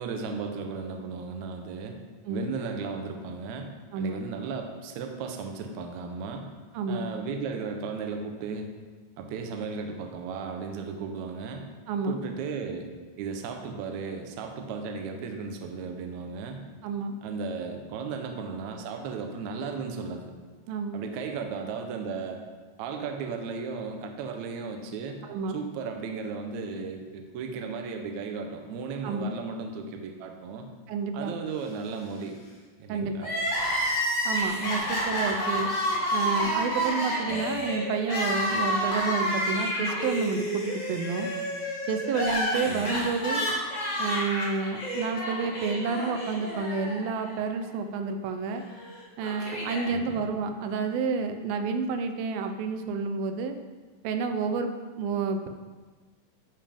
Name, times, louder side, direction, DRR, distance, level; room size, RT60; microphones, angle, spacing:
voice 1, 0.0-2.0 2.3-6.5 6.9-8.7 9.2-11.7 12.1-12.9 13.2-16.7 17.2-20.3 20.9-22.4 22.8-25.2 25.5-30.7 31.1-32.4 32.8-33.3 35.3-35.4 37.3-37.5 42.7-42.9 49.9-50.2, right 5 dB, 75° right, 4 dB, 1.8 m, -35 dB
voice 2, 6.7-7.1 11.9-12.2 16.8-17.2 20.7-21.0 25.3-25.6 29.0-29.3 30.9-31.4 32.9-33.3 34.3-35.7 36.1-41.3 41.9-43.5 44.0-48.6 49.2-53.6 54.0-54.7 55.0-55.5, right 4 dB, 90° right, 7 dB, 2.5 m, -30 dB
Crying sobbing, 33.2-47.3 47.6-47.7 48.7-49.8, equal, 35° left, 0.7 m, -29 dB
12.5 x 5.4 x 3.5 m, 1.4 s
omnidirectional pair, 4.1 m